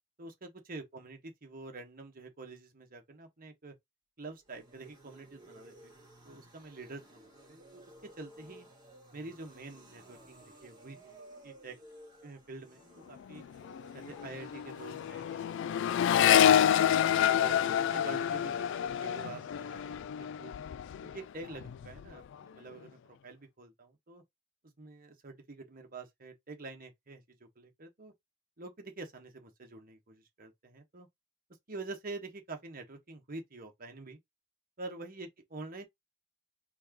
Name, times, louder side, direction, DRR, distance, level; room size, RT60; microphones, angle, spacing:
voice 1, 0.2-3.7 4.2-5.9 6.2-8.7 9.1-11.2 11.4-11.8 12.2-13.4 13.9-16.9 17.3-20.1 20.4-20.5 21.0-24.2 24.8-28.1 28.6-31.1 31.7-34.2 34.8-35.8, right 3 dB, 45° right, 1.4 m, -47 dB
sound 1, 4.3-19.9, right 1 dB, 25° right, 2.5 m, -56 dB
Accelerating revving vroom, 13.2-13.4 13.6-21.2 21.5-22.1, left 9 dB, 65° left, 0.3 m, -28 dB
4.6 x 3.5 x 3.0 m
head